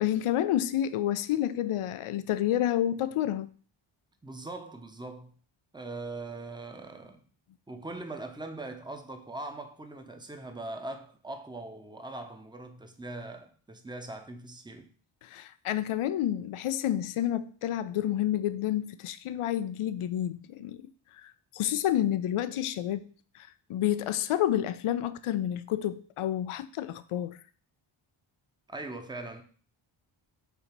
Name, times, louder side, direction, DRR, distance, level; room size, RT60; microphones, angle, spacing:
voice 1, 0.0-3.5 15.2-20.9 21.2-23.1 23.3-27.4, left 12 dB, 85° left, 0.6 m, -29 dB
voice 2, 4.2-5.3 5.7-7.3 7.7-14.9 28.7-29.4, right 2 dB, 10° right, 0.8 m, -41 dB
6.9 x 2.8 x 5.8 m
wide cardioid pair, 110°, 49 cm